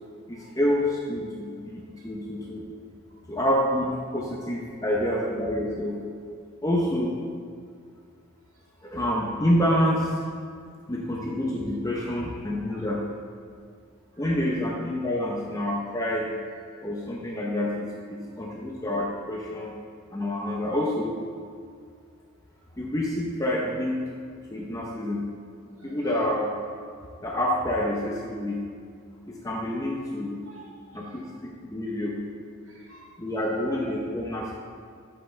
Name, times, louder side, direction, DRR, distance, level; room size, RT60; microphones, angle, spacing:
voice 1, 0.3-2.6 3.3-6.0 6.6-7.1 8.8-10.2 10.9-13.0 14.2-16.3 16.8-19.8 20.1-21.1 22.8-24.0 24.5-25.3 25.8-26.5 27.2-28.6 29.3-30.5 30.9-31.2 31.7-32.2 33.2-34.5, left 1 dB, 15° left, -3 dB, 0.9 m, -27 dB
voice 2, 14.1-14.4 16.8-16.9 18.2-18.5 25.8-26.2 27.0-27.2 30.4-31.3 32.6-33.4, right 2 dB, 70° right, -3 dB, 2.1 m, -53 dB
12.0 x 8.0 x 3.4 m, 2.1 s
head